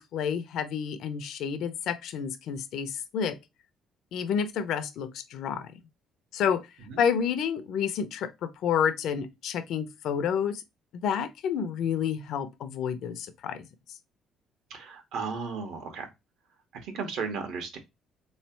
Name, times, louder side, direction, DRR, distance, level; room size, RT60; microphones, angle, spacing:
voice 1, 0.0-3.4 4.1-5.7 6.3-6.7 7.0-10.6 10.9-13.6, left 7 dB, 60° left, 0.7 m, -29 dB
voice 2, 14.7-16.1 16.7-17.8, right 5 dB, 70° right, 1.3 m, -35 dB
3.7 x 3.2 x 4.4 m
cardioid pair, 155°, 0 cm